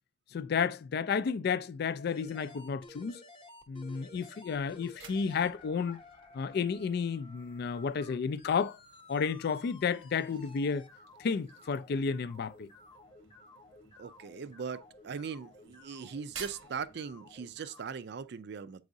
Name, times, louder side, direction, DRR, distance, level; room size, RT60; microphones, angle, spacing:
voice 1, 0.3-3.2 3.7-6.0 6.3-8.8 9.1-10.9 11.2-12.7, left 6 dB, 55° left, 0.3 m, -32 dB
sound 1, 2.1-17.8, left 2 dB, 25° left, 0.8 m, -55 dB
sound 2, 4.6-17.6, right 6 dB, 85° right, 1.1 m, -56 dB
voice 2, 14.0-18.8, right 6 dB, 55° right, 0.4 m, -40 dB
8.1 x 4.8 x 2.6 m
head